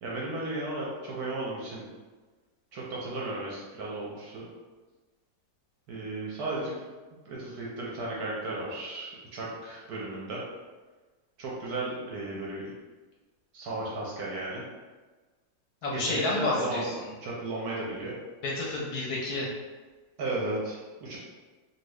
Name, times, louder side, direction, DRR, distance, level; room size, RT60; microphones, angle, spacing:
voice 1, 0.0-1.9 2.7-4.5 5.9-6.8 7.3-10.4 11.4-12.7 13.5-14.6 15.9-16.9 17.2-18.1 20.2-21.2, right 2 dB, 65° right, -4 dB, 1.0 m, -34 dB
voice 2, 15.8-17.0 18.4-19.5, left 2 dB, 70° left, -4 dB, 1.0 m, -30 dB
2.7 x 2.7 x 3.1 m, 1.3 s
omnidirectional pair, 2.0 m